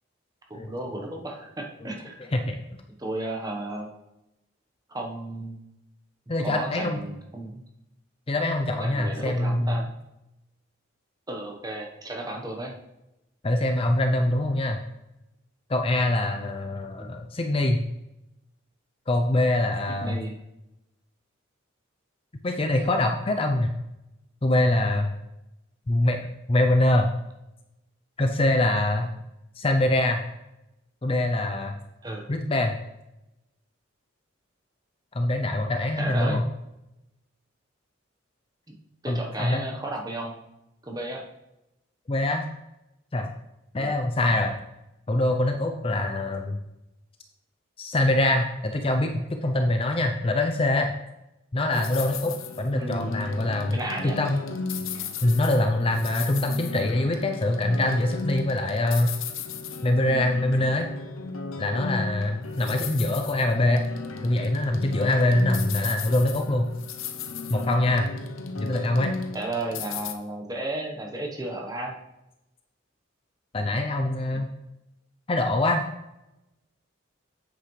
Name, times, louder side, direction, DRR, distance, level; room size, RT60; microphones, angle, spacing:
voice 1, 0.5-2.1 3.0-3.9 4.9-5.6 6.4-7.6 8.7-9.9 11.3-12.7 17.0-17.1 20.0-20.4 32.0-32.3 36.0-36.4 39.0-40.4 40.8-41.2 43.8-44.0 52.7-53.2 53.7-54.2 69.3-72.0, right 2 dB, 20° right, 0 dB, 1.1 m, -33 dB
voice 2, 2.3-2.6 6.3-7.0 8.3-9.8 13.4-14.8 15.7-17.8 19.1-20.2 22.4-23.7 24.4-25.1 25.9-26.2 26.5-27.1 28.2-29.1 29.6-30.2 31.0-31.8 32.3-32.7 35.1-36.4 39.1-39.6 42.1-42.5 43.1-43.3 43.7-44.6 45.1-46.6 47.8-50.9 51.5-54.4 55.2-59.1 59.8-60.9 61.6-63.8 64.2-66.7 67.5-68.1 68.6-69.2 73.5-74.5 75.3-75.8, left 1 dB, 25° left, 4 dB, 0.5 m, -24 dB
sound 1, 51.7-70.1, left 4 dB, 90° left, 0.7 m, -35 dB
8.3 x 8.2 x 3.2 m, 0.92 s
head